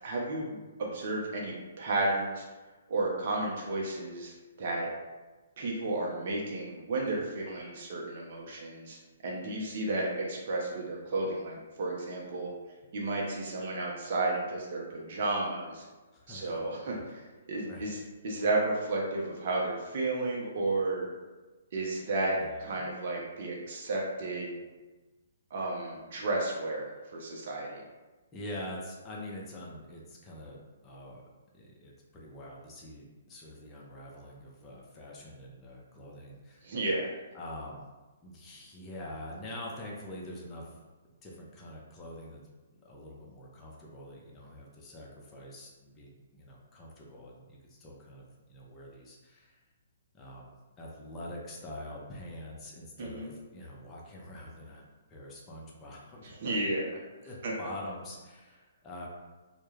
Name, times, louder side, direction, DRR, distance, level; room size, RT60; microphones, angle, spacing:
voice 1, 0.0-2.4 2.9-4.9 5.6-9.0 9.2-12.5 12.9-15.8 16.3-17.2 17.5-18.0 18.2-21.1 21.7-24.6 25.5-27.8 36.6-37.1 53.0-53.3 56.2-56.9 57.4-57.5, right 2 dB, 55° right, -2 dB, 0.5 m, -32 dB
voice 2, 16.1-16.6 16.9-17.1 17.6-17.9 22.3-22.8 28.3-31.2 31.5-36.7 37.3-37.9 38.2-40.8 41.2-42.4 42.7-49.6 50.1-54.8 55.1-56.6 57.2-59.1, left 1 dB, 20° left, -4 dB, 0.5 m, -45 dB
2.2 x 2.1 x 3.1 m, 1.2 s
hypercardioid pair, 135°, 0 cm